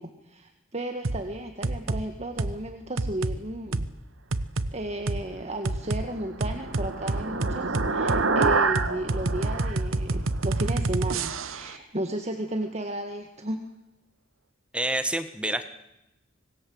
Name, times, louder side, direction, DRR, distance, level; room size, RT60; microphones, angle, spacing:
voice 1, 0.0-3.9 4.7-13.6, right 1 dB, 35° right, 5 dB, 1.8 m, -34 dB
sound 1, 1.0-1.2 1.6-2.0 2.4-2.6 3.0-3.4 3.7-3.9 4.3-4.7 5.1-5.2 5.6-6.0 6.4-11.7, right 2 dB, 90° right, 1.1 m, -28 dB
sound 2, 6.0-10.7, right 4 dB, 70° right, 2.0 m, -28 dB
voice 2, 14.7-15.6, right 1 dB, 5° right, 9 dB, 1.5 m, -27 dB
25.5 x 21.0 x 7.9 m, 0.90 s
head